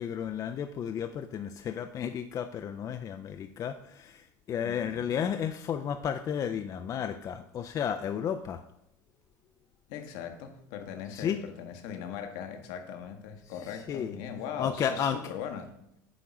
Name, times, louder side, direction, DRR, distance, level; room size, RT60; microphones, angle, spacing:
voice 1, 0.0-4.2 4.5-8.6 11.1-11.4 13.9-14.2 14.6-15.2, left 8 dB, 35° left, 7 dB, 0.4 m, -32 dB
voice 2, 4.6-5.2 9.9-15.7, left 8 dB, 65° left, 6 dB, 1.0 m, -40 dB
7.8 x 3.1 x 5.9 m, 0.80 s
hypercardioid pair, 85°, 10 cm